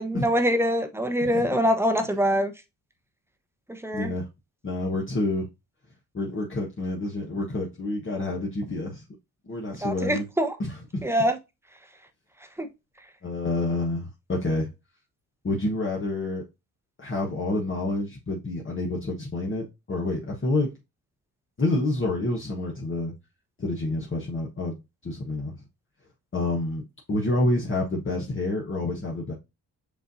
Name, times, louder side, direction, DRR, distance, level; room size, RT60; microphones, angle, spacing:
voice 1, 0.0-2.5 3.7-4.1 9.8-10.5 11.0-11.4 12.6-12.7, equal, 5° right, 1.0 m, -24 dB
voice 2, 3.9-4.3 4.6-5.5 6.1-9.0 9.5-10.3 10.6-11.1 13.2-14.7 15.4-16.4 17.0-20.7 21.6-23.1 23.6-25.5 26.3-26.8 27.1-29.3, left 2 dB, 35° left, 1.2 m, -28 dB
7.0 x 2.6 x 2.6 m
supercardioid pair, 60°, 37 cm